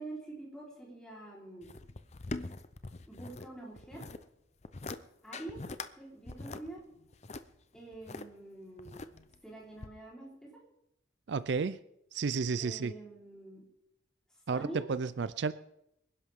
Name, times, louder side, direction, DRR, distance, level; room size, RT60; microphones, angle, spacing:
voice 1, 0.0-1.7 3.1-4.1 5.2-5.6 6.0-6.8 7.7-9.1 9.4-10.5 12.6-13.6 14.5-14.9, right 2 dB, 5° left, -4 dB, 3.8 m, -46 dB
sound 1, 1.6-3.5 3.8-4.2 4.6-5.0 5.3-5.9 6.3-8.2 8.8-9.4 9.8-9.9, left 3 dB, 35° left, 0.6 m, -42 dB
voice 2, 11.3-11.8 12.1-12.9 14.5-15.5, right 5 dB, 65° right, 15 dB, 0.4 m, -32 dB
25.5 x 11.0 x 3.6 m, 0.81 s
head